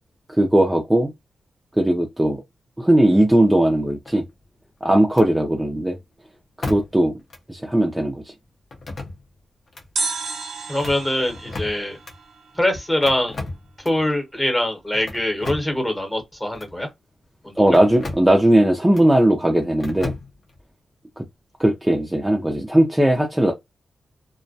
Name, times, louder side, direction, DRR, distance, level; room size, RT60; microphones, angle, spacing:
voice 1, 0.4-1.1 1.8-2.4 2.8-4.2 4.8-6.0 6.6-7.1 7.5-8.2 17.6-20.1 21.2-21.3 21.6-23.5, right 1 dB, 10° right, 0.4 m, -18 dB
sound 1, 4.1-4.6 5.1-5.3 6.6-7.1 7.3-7.4 8.7-9.4 9.7-9.9 10.6-12.2 13.0-14.1 14.9-15.8 16.5-16.7 17.7-18.3 18.9-19.1 19.8-20.6, left 2 dB, 50° left, 0.7 m, -34 dB
sound 2, 10.0-13.0 13.3-13.4, right 4 dB, 80° right, 0.6 m, -32 dB
voice 2, 10.7-12.0 12.6-13.4 13.8-16.9 17.4-17.5, left 1 dB, 10° left, 1.0 m, -23 dB
2.2 x 2.1 x 2.6 m
cardioid pair, 90°, 0 cm